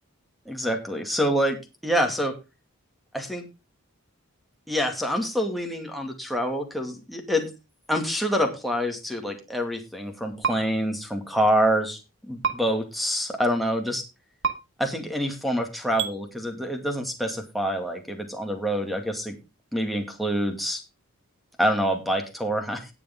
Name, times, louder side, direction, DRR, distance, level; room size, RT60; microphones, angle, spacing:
voice 1, 0.6-1.6 1.8-2.3 3.1-3.5 4.7-7.5 7.9-12.0 12.3-14.0 14.8-19.4 19.7-20.8 21.6-22.9, equal, ahead, 2 dB, 2.3 m, -26 dB
sound 1, 10.4-10.6 12.4-12.6 14.4-14.5 16.0-16.1, right 7 dB, 60° right, 1.7 m, -25 dB
18.5 x 7.0 x 3.7 m, 0.28 s
head